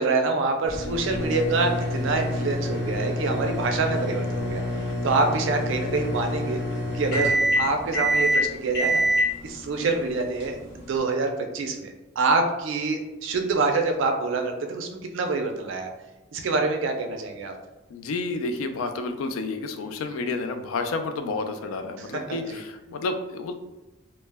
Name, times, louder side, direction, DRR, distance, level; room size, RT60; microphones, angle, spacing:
voice 1, 0.0-6.6 6.9-9.0 9.4-15.9 16.3-17.5 22.0-22.6, right 3 dB, 65° right, 4 dB, 0.4 m, -26 dB
sound 1, 0.7-11.0, equal, 55° left, 0.9 m, -27 dB
voice 2, 17.9-23.5, left 3 dB, 85° left, 8 dB, 0.3 m, -30 dB
2.1 x 2.0 x 3.3 m, 1.1 s
head